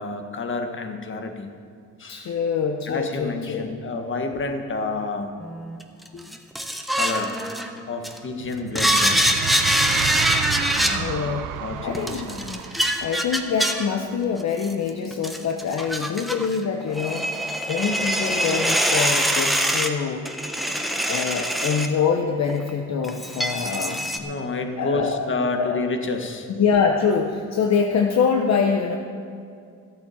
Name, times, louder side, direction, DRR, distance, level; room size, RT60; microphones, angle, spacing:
voice 1, 0.0-1.5 2.0-2.3 2.9-5.4 6.1-6.2 6.9-7.4 7.9-9.3 10.8-12.7 24.2-26.5, left 3 dB, 40° left, 5 dB, 1.6 m, -29 dB
voice 2, 2.1-3.7 11.0-11.5 11.8-12.3 13.0-17.3 17.7-20.3 21.1-24.1 24.8-25.3 25.6-25.8 26.5-29.0, left 6 dB, 60° left, 3 dB, 1.0 m, -24 dB
sound 1, 5.4-8.2 8.7-11.0 11.9-13.9 14.6-16.6 16.8-19.9 20.2-21.9 22.5-22.7 23.0-24.2, equal, ahead, 1.2 m, -24 dB
sound 2, 8.3-14.1, right 12 dB, 85° right, 0.5 m, -32 dB
14.5 x 8.5 x 7.2 m, 2.4 s
cardioid pair, 90°, 30 cm